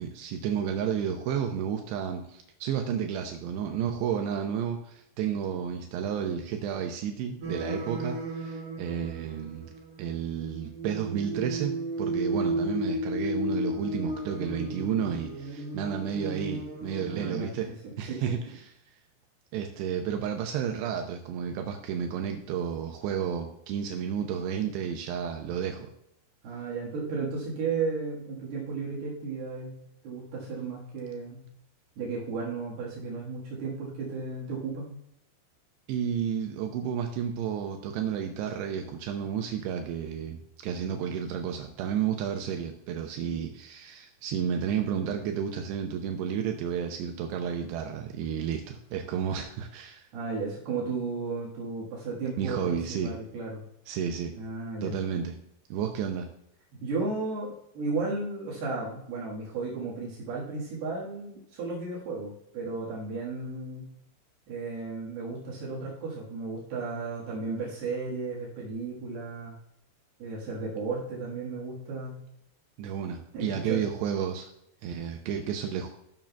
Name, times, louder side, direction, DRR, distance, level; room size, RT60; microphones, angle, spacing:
voice 1, 0.0-9.7 10.0-17.7 18.0-18.7 19.5-25.9 35.9-50.1 52.4-53.1 53.9-54.3 54.8-55.4 55.7-56.3 72.8-74.5 74.8-75.9, right 8 dB, 85° right, 4 dB, 2.7 m, -32 dB
sound 1, 7.4-10.1 10.4-17.4, right 1 dB, 45° right, 2.9 m, -34 dB
voice 2, 17.0-17.5 17.8-18.3 26.4-29.8 30.0-31.5 32.0-34.9 50.1-53.6 54.4-55.0 56.8-63.8 64.5-69.6 70.2-72.2 73.3-73.8, right 4 dB, 65° right, -5 dB, 3.4 m, -34 dB
13.0 x 7.2 x 2.3 m, 0.76 s
omnidirectional pair, 5.0 m